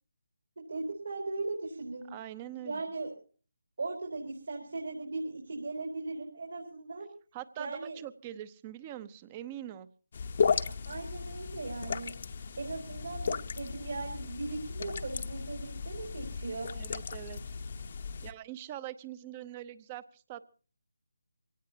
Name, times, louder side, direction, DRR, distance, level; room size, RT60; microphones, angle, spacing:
voice 1, 0.6-2.1 2.6-3.1 3.8-7.1 7.6-8.0 10.7-12.1 12.6-16.7, right 3 dB, 65° right, 0 dB, 4.5 m, -38 dB
voice 2, 2.1-2.8 7.3-9.9 16.7-17.4 18.2-20.5, right 12 dB, 20° right, 17 dB, 0.8 m, -43 dB
sound 1, 10.1-18.3, left 5 dB, 45° left, 0.9 m, -35 dB
24.5 x 17.5 x 2.8 m, 0.38 s
figure-of-eight pair, 165°, 0 cm